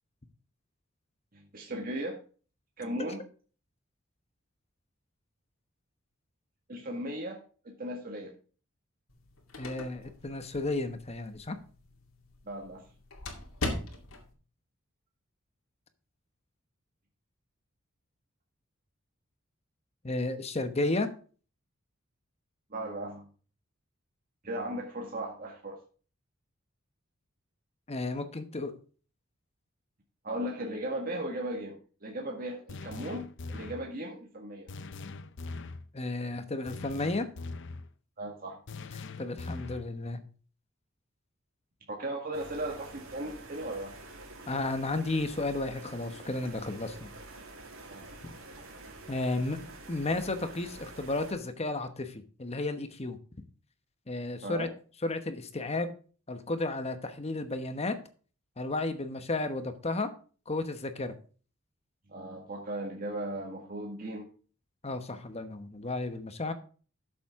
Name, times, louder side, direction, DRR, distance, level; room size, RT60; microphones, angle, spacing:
voice 1, 1.3-2.2 2.8-3.2 6.7-7.4 7.8-8.3 12.5-12.8 22.7-23.3 24.4-25.8 30.2-34.7 38.2-38.6 39.7-39.8 41.9-43.9 47.9-48.1 54.4-54.7 62.1-64.3, right 1 dB, 45° right, 0 dB, 1.9 m, -37 dB
sound 1, 9.1-14.3, left 2 dB, 85° left, 2.4 m, -41 dB
voice 2, 9.6-11.6 20.0-21.1 27.9-28.7 35.9-37.3 39.2-40.2 44.5-47.1 48.2-48.3 49.1-49.6 49.9-53.2 54.1-54.7 55.0-55.9 56.3-58.0 58.6-60.1 60.5-61.1 64.8-66.5, left 2 dB, 30° left, 9 dB, 1.1 m, -33 dB
sound 2, 32.7-33.9 34.7-35.8 36.7-37.9 38.7-39.9, left 3 dB, 60° left, 0.7 m, -41 dB
sound 3, 42.3-51.3, right 2 dB, 75° right, 2.8 m, -48 dB
12.5 x 7.4 x 3.7 m, 0.39 s
head